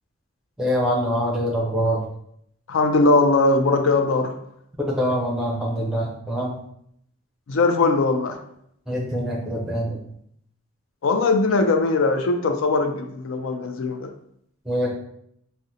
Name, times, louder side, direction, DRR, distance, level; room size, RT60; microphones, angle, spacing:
voice 1, 0.6-2.0 4.8-6.6 8.9-10.0 14.6-14.9, equal, 5° right, -3 dB, 0.6 m, -24 dB
voice 2, 2.7-4.4 7.5-8.4 11.0-14.1, left 3 dB, 75° left, 6 dB, 0.4 m, -20 dB
3.7 x 2.1 x 2.7 m, 0.71 s
head